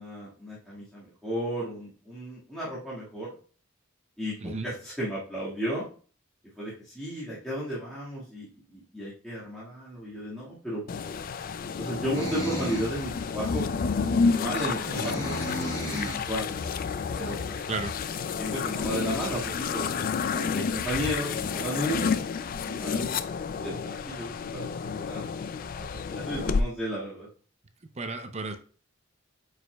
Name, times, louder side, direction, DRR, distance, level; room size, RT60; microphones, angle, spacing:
voice 1, 0.0-3.3 4.2-5.9 6.6-10.8 11.8-13.6 13.9-15.4 15.6-16.5 17.1-17.7 18.4-19.8 20.3-22.2 22.6-23.1 23.6-25.2 26.1-27.3, equal, ahead, -10 dB, 1.8 m, -34 dB
sound 1, 10.9-26.6, left 5 dB, 40° left, 0.3 m, -30 dB
sound 2, 12.1-12.9 13.5-13.6 14.5-16.3, right 1 dB, 20° left, 2.8 m, -34 dB
voice 2, 28.0-28.6, right 3 dB, 30° right, 7 dB, 0.6 m, -33 dB
8.4 x 5.0 x 2.3 m, 0.40 s
head